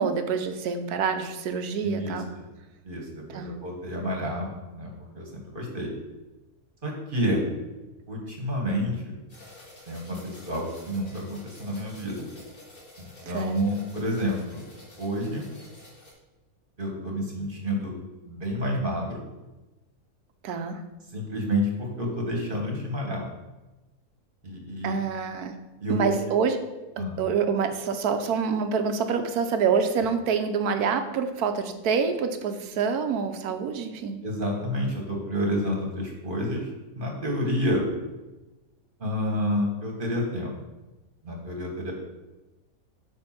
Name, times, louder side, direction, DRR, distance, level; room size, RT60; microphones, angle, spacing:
voice 1, 0.0-2.3 3.3-3.5 13.3-13.6 20.4-20.8 24.8-25.5 25.9-26.6 27.0-34.2, right 6 dB, 75° right, 7 dB, 1.3 m, -26 dB
voice 2, 1.8-2.1 2.8-5.9 6.8-7.5 8.1-9.2 9.9-12.2 13.0-14.6 15.0-15.4 16.8-17.9 18.2-19.2 21.1-23.2 24.4-25.0 25.8-26.0 27.0-27.2 34.2-36.7 36.9-37.8 39.0-40.5 41.2-41.9, equal, 35° right, 0 dB, 1.6 m, -29 dB
sound 1, 9.3-16.1, left 1 dB, 60° left, 2.5 m, -50 dB
8.9 x 3.5 x 5.8 m, 1.1 s
omnidirectional pair, 1.6 m